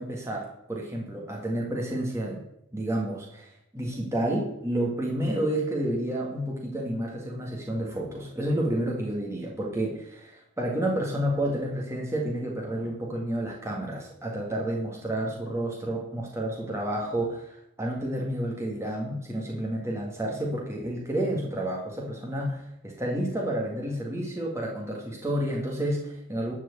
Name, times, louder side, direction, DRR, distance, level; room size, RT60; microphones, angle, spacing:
voice 1, 0.0-2.4 2.7-26.5, right 1 dB, 10° right, -2 dB, 1.8 m, -30 dB
12.0 x 4.7 x 7.9 m, 0.81 s
head